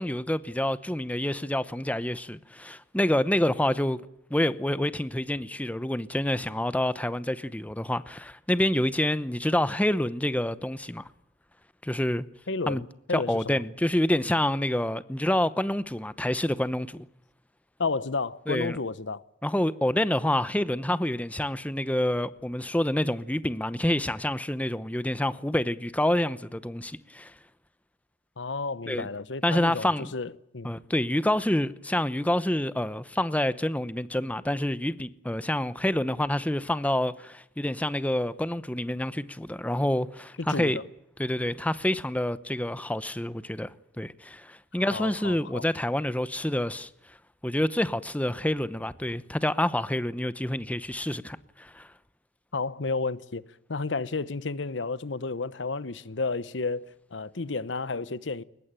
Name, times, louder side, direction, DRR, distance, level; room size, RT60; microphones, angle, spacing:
voice 1, 0.0-4.0 4.3-11.0 11.8-12.2 12.7-12.8 13.1-17.1 18.5-18.8 19.4-27.3 28.9-29.1 29.4-30.1 30.6-40.8 41.2-46.9 47.4-51.9, left 1 dB, 10° left, 0.8 m, -27 dB
voice 2, 12.5-13.6 17.8-19.2 28.4-30.7 40.4-40.8 44.9-45.7 52.5-53.4 53.7-58.4, left 3 dB, 90° left, 1.0 m, -32 dB
22.5 x 20.0 x 9.0 m
head